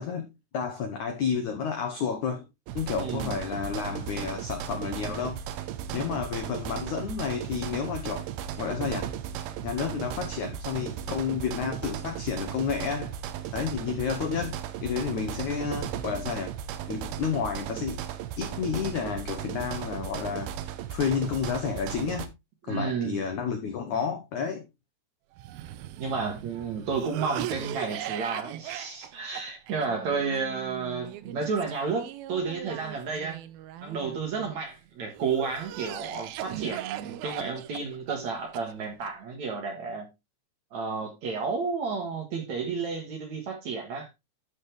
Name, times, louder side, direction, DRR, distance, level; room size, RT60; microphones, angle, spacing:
voice 1, 0.0-2.4 2.8-5.4 5.9-8.3 8.6-9.1 9.6-13.1 13.5-16.5 16.9-18.0 18.4-20.5 20.9-22.3 22.7-24.6, left 6 dB, 75° left, 1.7 m, -31 dB
sound 1, 2.7-22.3, right 10 dB, 75° right, 2.7 m, -36 dB
voice 2, 3.0-3.4 5.9-6.0 22.7-23.2 26.0-33.4 33.8-40.1 40.7-44.1, right 5 dB, 55° right, 2.3 m, -31 dB
Cough, 25.4-34.6 35.2-39.1, right 13 dB, 90° right, 2.1 m, -39 dB
13.0 x 5.7 x 3.3 m
omnidirectional pair, 5.2 m